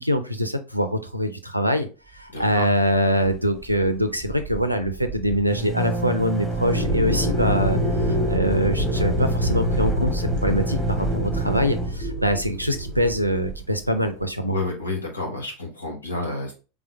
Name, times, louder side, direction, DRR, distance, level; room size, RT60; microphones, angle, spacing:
voice 1, 0.0-1.9 2.1-7.8 8.1-14.6, equal, 90° right, 8 dB, 0.5 m, -24 dB
voice 2, 2.3-2.7 14.5-16.5, left 2 dB, 80° left, 0 dB, 1.3 m, -29 dB
sound 1, 2.4-3.0 3.2-3.4 3.6-14.3, right 3 dB, 5° right, 1.2 m, -29 dB
sound 2, 6.7-13.2, left 1 dB, 55° left, 1.3 m, -26 dB
3.7 x 3.5 x 3.5 m, 0.33 s
figure-of-eight pair, 80°, 0 cm